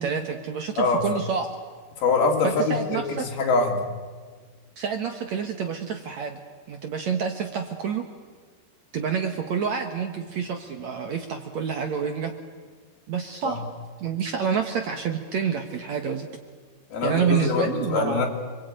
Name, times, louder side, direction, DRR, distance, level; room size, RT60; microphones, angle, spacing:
voice 1, 0.0-1.5 2.4-3.1 4.8-6.4 6.7-8.1 8.9-12.3 13.1-13.6 14.0-16.3 17.0-18.2, right 6 dB, 60° right, 5 dB, 2.0 m, -28 dB
voice 2, 0.8-1.2 2.0-3.9 13.4-13.6 16.9-18.3, left 3 dB, 70° left, 1 dB, 4.9 m, -24 dB
28.0 x 23.0 x 9.0 m, 1.5 s
omnidirectional pair, 4.6 m